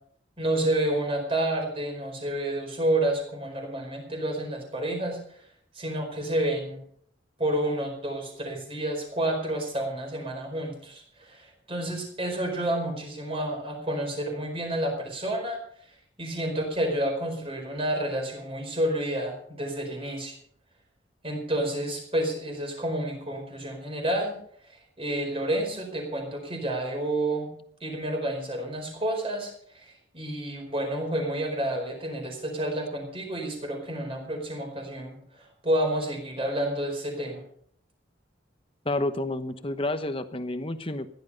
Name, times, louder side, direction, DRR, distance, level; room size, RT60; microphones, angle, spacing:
voice 1, 0.4-5.2 5.7-6.8 7.4-15.6 16.2-20.4 21.2-24.4 25.0-27.5 27.8-37.4, right 1 dB, 30° right, 2 dB, 4.6 m, -29 dB
voice 2, 38.8-41.1, left 2 dB, 30° left, 10 dB, 1.0 m, -30 dB
16.0 x 11.5 x 5.5 m, 0.63 s
head